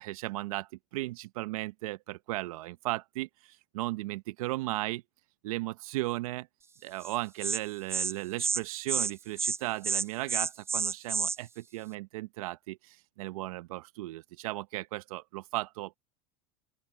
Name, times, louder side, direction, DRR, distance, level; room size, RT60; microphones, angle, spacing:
voice 1, 0.0-5.0 5.4-6.5 6.8-16.0, right 18 dB, 75° right, 0.8 m, -36 dB
Insect, 7.0-7.1 7.4-7.6 7.9-8.1 8.4-8.6 8.9-9.1 9.4-9.6 9.8-11.4, right 5 dB, 15° right, 0.3 m, -29 dB
open air
hypercardioid pair, 95°, 18 cm